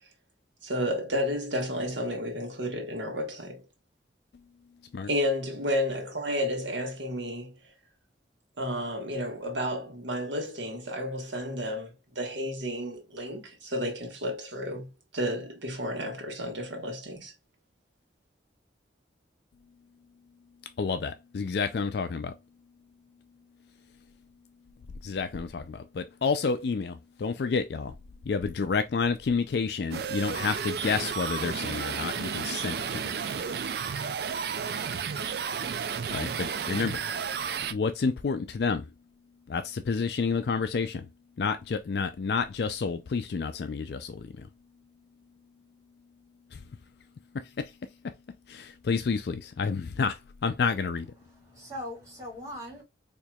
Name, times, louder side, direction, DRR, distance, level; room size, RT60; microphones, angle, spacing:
voice 1, 0.6-3.6 5.1-7.5 8.6-17.3, equal, 85° right, 1.4 m, -32 dB
voice 2, 20.8-22.3 25.0-27.9 28.3-33.1 36.1-37.0 37.7-38.9 39.5-41.1 41.4-44.5 46.5-46.6 47.3-47.7 48.5-51.1, left 5 dB, 60° left, 0.4 m, -29 dB
sound 1, 29.9-37.7, right 6 dB, 60° right, 0.4 m, -32 dB
voice 3, 51.2-52.8, left 1 dB, 20° right, 2.2 m, -40 dB
4.4 x 2.9 x 2.3 m
head